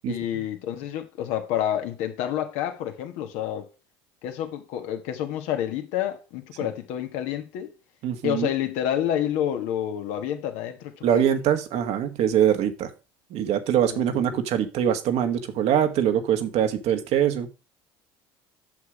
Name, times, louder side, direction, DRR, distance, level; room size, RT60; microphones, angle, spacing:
voice 1, 0.1-3.7 4.2-7.7 8.2-11.2 13.8-14.4, left 10 dB, 70° left, 1.6 m, -29 dB
voice 2, 8.0-8.5 11.0-12.9 13.3-17.5, right 10 dB, 65° right, 1.4 m, -23 dB
8.1 x 6.6 x 5.0 m
hypercardioid pair, 75°, 12 cm